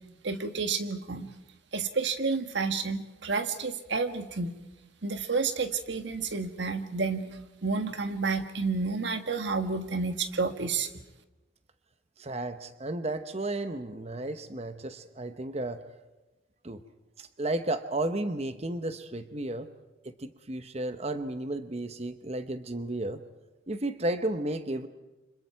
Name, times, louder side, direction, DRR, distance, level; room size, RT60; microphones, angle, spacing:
voice 1, 0.2-1.3 1.7-4.5 5.0-7.2 7.6-10.9, right 4 dB, 70° right, 8 dB, 1.6 m, -30 dB
voice 2, 12.2-15.8 16.6-16.8 17.2-19.7 20.0-23.2 23.7-24.9, right 2 dB, 35° right, 9 dB, 0.9 m, -33 dB
29.5 x 26.0 x 4.6 m, 1.0 s
head